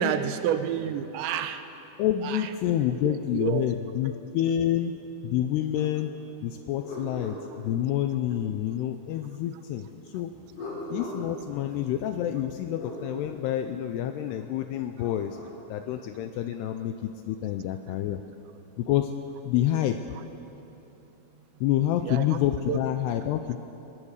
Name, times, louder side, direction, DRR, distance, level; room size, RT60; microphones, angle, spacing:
voice 1, 0.0-1.6 2.2-2.4 3.0-3.7 22.0-22.4 22.7-22.8, right 8 dB, 80° right, 9 dB, 3.2 m, -29 dB
voice 2, 2.0-4.9 5.2-6.1 6.4-10.3 10.9-15.4 15.7-18.2 18.8-19.1 19.4-20.0 21.6-23.6, left 11 dB, 80° left, 7 dB, 2.5 m, -28 dB
sound 1, 5.7-6.0 6.4-8.4 10.3-13.0 14.7-15.5, left 1 dB, 60° left, 6.9 m, -41 dB
22.0 x 22.0 x 6.6 m, 3.0 s
omnidirectional pair, 5.2 m